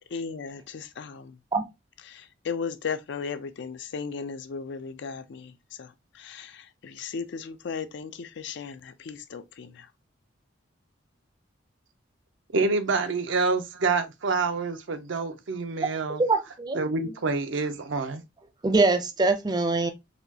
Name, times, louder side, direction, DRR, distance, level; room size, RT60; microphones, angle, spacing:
voice 1, 0.1-1.4 2.1-5.9 6.2-9.9, left 5 dB, 65° left, 0.4 m, -36 dB
voice 2, 12.5-16.2 16.7-18.2, right 3 dB, 70° right, 0.6 m, -27 dB
voice 3, 16.2-16.8 18.6-19.9, right 3 dB, 20° right, 0.5 m, -23 dB
4.1 x 2.3 x 2.7 m
head